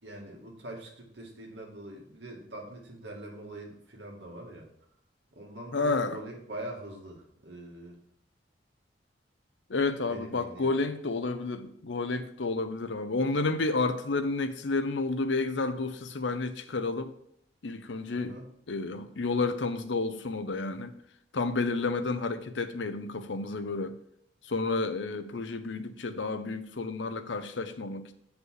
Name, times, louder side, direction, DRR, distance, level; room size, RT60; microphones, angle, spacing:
voice 1, 0.0-4.7 5.4-8.0 10.0-10.7 18.1-18.5, right 1 dB, 70° right, 2.1 m, -43 dB
voice 2, 5.7-6.2 9.7-17.1 17.6-18.4 18.7-20.9 21.3-24.0 24.4-28.1, left 3 dB, 85° left, 0.8 m, -30 dB
8.1 x 5.2 x 4.7 m
head